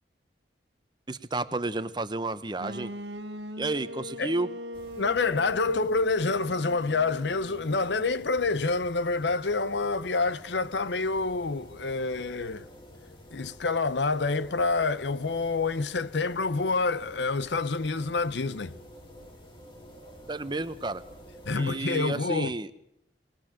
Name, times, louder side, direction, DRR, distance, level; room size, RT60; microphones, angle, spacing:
voice 1, 1.1-2.9 3.6-4.5 20.3-21.0 21.5-22.7, right 2 dB, 25° right, 0.9 m, -31 dB
sound 1, 2.6-8.5, left 1 dB, 80° right, 1.5 m, -41 dB
sound 2, 4.7-21.7, equal, 30° left, 2.6 m, -49 dB
voice 2, 5.0-12.7 13.3-18.7 21.5-22.5, left 3 dB, 80° left, 0.8 m, -27 dB
23.5 x 19.5 x 7.6 m
head